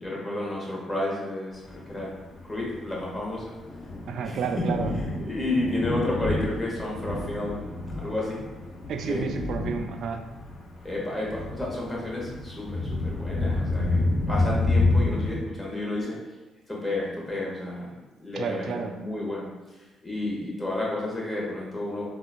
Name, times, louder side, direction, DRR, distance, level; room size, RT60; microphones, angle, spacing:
voice 1, 0.0-3.5 4.2-4.6 5.0-7.6 7.9-8.4 9.1-9.2 10.8-16.2 16.7-17.9 18.2-19.5 20.0-22.0, left 2 dB, 15° left, -4 dB, 1.1 m, -31 dB
Thunder, 1.7-15.4, left 2 dB, 55° left, 0.6 m, -29 dB
voice 2, 4.1-5.0 8.9-10.3 18.4-19.0, right 6 dB, 70° right, 6 dB, 0.3 m, -31 dB
3.7 x 2.3 x 2.4 m, 1.1 s
cardioid pair, 90°, 0 cm